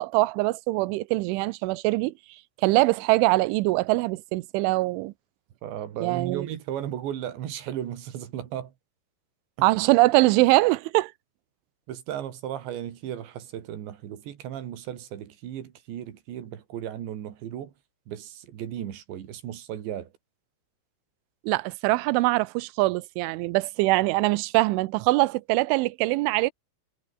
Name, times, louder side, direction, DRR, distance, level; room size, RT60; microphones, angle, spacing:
voice 1, 0.0-2.1 2.6-5.1 6.0-6.5 9.6-11.1 21.4-26.5, right 21 dB, 90° right, 3.2 m, -23 dB
voice 2, 5.6-8.7 11.9-17.7 18.1-20.1, right 10 dB, 70° right, 4.5 m, -35 dB
omnidirectional pair, 5.4 m